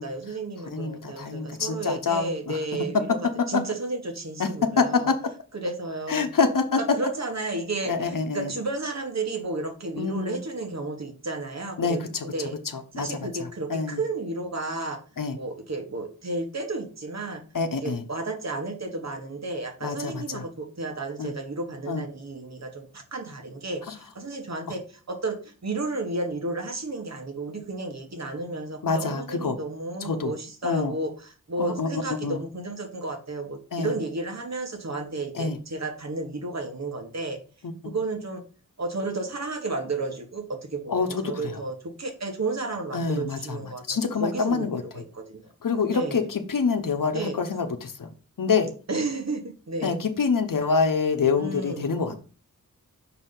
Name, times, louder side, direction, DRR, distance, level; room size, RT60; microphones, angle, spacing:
voice 1, 0.0-5.1 5.5-6.3 6.8-12.6 12.9-15.0 15.3-17.4 17.8-23.8 24.1-37.4 37.8-38.4 38.8-45.4 45.9-46.2 47.1-47.4 48.9-50.0 51.4-51.9, right 2 dB, 50° right, 5 dB, 1.3 m, -32 dB
voice 2, 0.7-2.6 3.5-3.6 4.4-4.5 4.8-5.3 6.1-6.8 7.9-8.5 10.0-10.4 11.8-12.3 12.7-14.0 15.2-15.4 17.5-18.0 19.8-20.4 21.2-21.3 21.9-22.0 23.9-24.0 28.8-29.6 30.0-30.3 30.6-30.9 31.6-32.4 33.7-33.9 35.3-35.6 40.9-41.5 42.9-43.6 43.9-45.0 45.6-48.1 48.4-48.7 49.8-52.2, left 5 dB, 70° left, 8 dB, 0.9 m, -26 dB
6.0 x 4.5 x 3.8 m, 0.37 s
wide cardioid pair, 75°, 34 cm